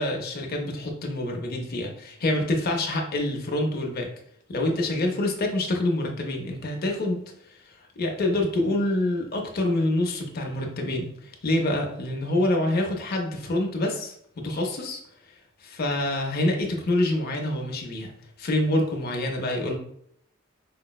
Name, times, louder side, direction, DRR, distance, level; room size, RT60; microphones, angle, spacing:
voice 1, 0.0-4.1 4.5-7.2 8.0-14.1 14.4-15.0 15.6-18.1 18.4-19.8, left 1 dB, 50° left, 2 dB, 0.6 m, -26 dB
4.9 x 2.0 x 2.3 m, 0.68 s
head